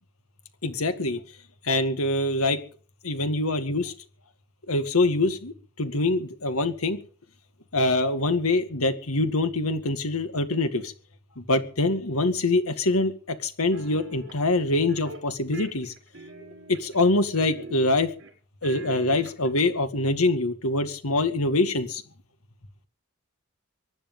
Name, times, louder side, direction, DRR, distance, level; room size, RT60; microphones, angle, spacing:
voice 1, 0.6-1.2 1.6-2.6 3.0-3.9 4.7-7.0 7.7-10.9 11.4-15.9 16.7-18.1 18.6-22.0, left 2 dB, 80° left, 9 dB, 2.1 m, -24 dB
sound 1, 13.7-14.4 14.9-15.2 15.5-17.1 17.4-18.3 18.6-19.6, right 2 dB, 60° right, 5.6 m, -42 dB
24.0 x 10.0 x 5.6 m, 0.43 s
head